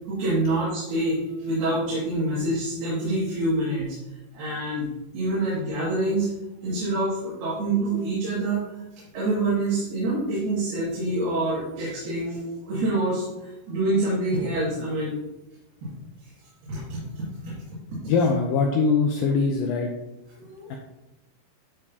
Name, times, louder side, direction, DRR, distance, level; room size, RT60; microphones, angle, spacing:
voice 1, 0.1-4.0 4.3-4.9 5.1-6.3 6.6-8.7 9.1-15.2 15.8-15.9 16.7-17.3 20.4-20.8, right 2 dB, 80° right, -9 dB, 4.1 m, -26 dB
voice 2, 18.1-19.9 20.7-20.8, left 4 dB, 80° left, 1 dB, 2.3 m, -22 dB
12.0 x 4.5 x 2.8 m, 0.95 s
omnidirectional pair, 4.4 m